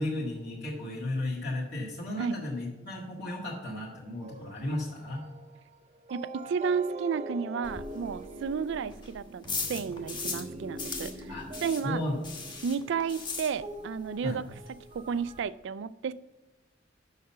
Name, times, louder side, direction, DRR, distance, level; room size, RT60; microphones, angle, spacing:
voice 1, 0.0-5.2 11.3-11.5 11.8-12.1 14.2-14.4, left 1 dB, 60° left, -5 dB, 1.9 m, -34 dB
sound 1, 4.2-15.5, right 2 dB, 35° right, 0.7 m, -44 dB
voice 2, 6.1-9.4 9.7-11.1 11.6-12.0 12.6-14.5 14.9-16.1, right 6 dB, 65° right, 18 dB, 0.3 m, -32 dB
sound 2, 7.6-10.5 10.8-14.0 14.2-14.3 14.7-14.8 14.9-15.4, left 4 dB, 25° left, 1.2 m, -38 dB
6.6 x 5.7 x 6.6 m, 1.1 s
head